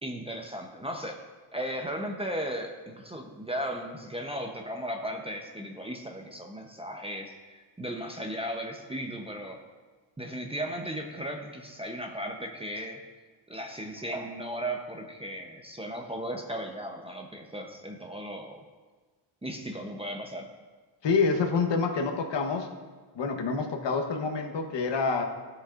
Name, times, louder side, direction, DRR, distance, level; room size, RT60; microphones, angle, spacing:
voice 1, 0.0-1.2 1.5-9.6 10.2-13.0 13.5-18.6 19.4-20.5, equal, 10° right, 3 dB, 0.7 m, -36 dB
voice 2, 21.0-22.7 23.1-25.3, left 4 dB, 60° left, 4 dB, 1.2 m, -27 dB
14.0 x 6.4 x 2.5 m, 1.4 s
cardioid pair, 100°, 50 cm